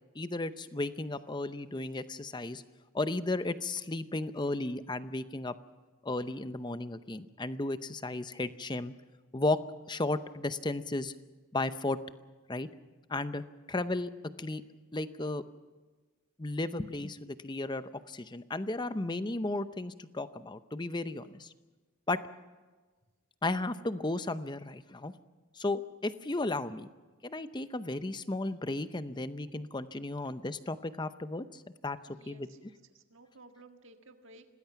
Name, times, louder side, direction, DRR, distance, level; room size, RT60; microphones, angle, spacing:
voice 1, 0.1-2.6 2.9-5.6 6.0-8.9 9.3-9.6 9.9-11.1 11.5-12.0 12.5-12.7 13.1-14.1 14.4-14.6 14.9-15.4 16.4-21.5 22.1-22.2 23.4-25.1 25.5-26.9 27.2-32.0 32.3-32.5, left 2 dB, 20° left, 12 dB, 0.7 m, -34 dB
voice 2, 32.1-32.6 32.9-34.5, right 2 dB, 55° right, 5 dB, 1.8 m, -55 dB
26.5 x 19.0 x 5.9 m, 1.3 s
head